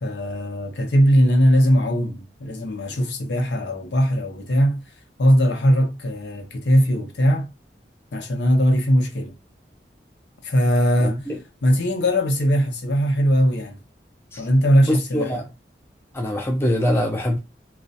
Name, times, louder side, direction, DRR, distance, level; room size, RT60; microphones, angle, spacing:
voice 1, 0.0-4.8 5.2-7.5 8.1-9.3 10.4-11.2 11.6-13.8 14.4-15.4, equal, 80° left, 0.6 m, -20 dB
voice 2, 11.0-11.4 14.3-14.4 14.8-15.4 16.1-17.4, left 1 dB, 15° left, 0.4 m, -23 dB
2.3 x 2.0 x 2.6 m
head